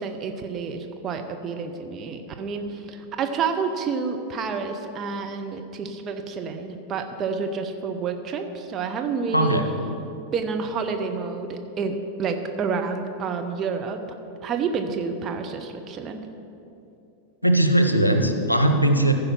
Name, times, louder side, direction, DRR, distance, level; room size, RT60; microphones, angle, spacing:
voice 1, 0.0-9.6 10.3-14.0 14.4-16.2, right 5 dB, 30° right, 5 dB, 0.7 m, -29 dB
voice 2, 9.3-9.7 17.4-19.1, right 1 dB, 85° left, 6 dB, 0.7 m, -19 dB
14.5 x 5.1 x 6.0 m, 2.8 s
figure-of-eight pair, 90°, 0 cm